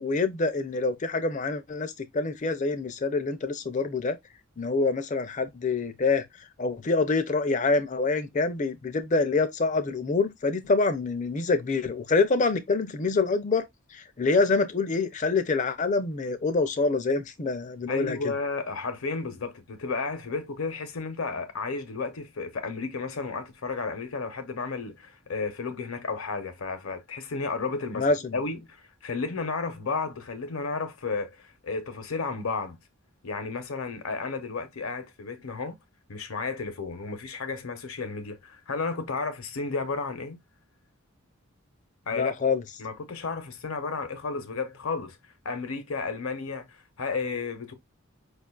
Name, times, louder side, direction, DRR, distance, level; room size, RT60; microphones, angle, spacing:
voice 1, 0.0-4.2 4.6-6.2 6.6-13.6 13.9-18.3 28.0-28.3 42.1-42.6, left 3 dB, 35° left, 0.4 m, -26 dB
voice 2, 17.9-32.8 33.2-35.8 36.1-40.4 42.1-42.3 42.8-45.2 45.4-47.7, left 4 dB, 75° left, 0.8 m, -33 dB
4.8 x 2.4 x 2.3 m
head